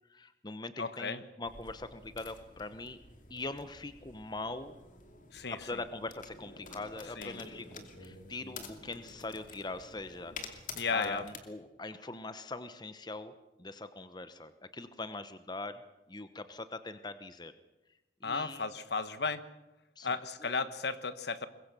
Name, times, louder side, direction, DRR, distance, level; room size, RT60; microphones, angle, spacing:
voice 1, 0.1-3.0 3.3-4.7 5.5-10.6 10.9-13.3 13.6-17.5 18.2-18.6 20.0-20.1 20.4-20.5, left 2 dB, 25° left, 11 dB, 0.9 m, -42 dB
voice 2, 0.8-1.2 5.3-5.8 7.2-7.4 10.7-11.2 18.2-19.4 20.0-21.5, left 4 dB, 65° left, 13 dB, 1.2 m, -34 dB
sound 1, 1.4-11.4, left 4 dB, 45° left, 2.6 m, -50 dB
23.0 x 21.5 x 6.8 m, 1.0 s
head